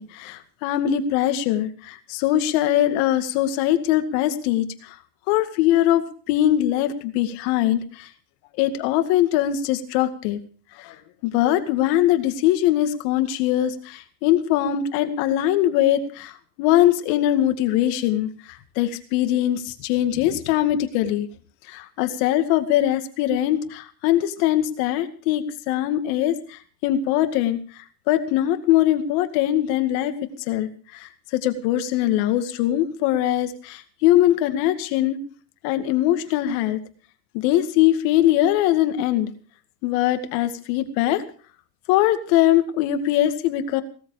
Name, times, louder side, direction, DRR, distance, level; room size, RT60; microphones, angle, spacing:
voice 1, 0.0-5.0 5.3-6.0 6.3-8.1 8.6-10.4 10.8-11.0 11.2-16.3 16.6-21.3 21.7-30.1 30.5-35.2 35.6-36.8 37.3-39.3 39.8-41.2 41.9-43.8, left 12 dB, 60° left, 9 dB, 2.2 m, -22 dB
18.0 x 13.5 x 4.9 m, 0.42 s
hypercardioid pair, 95°, 49 cm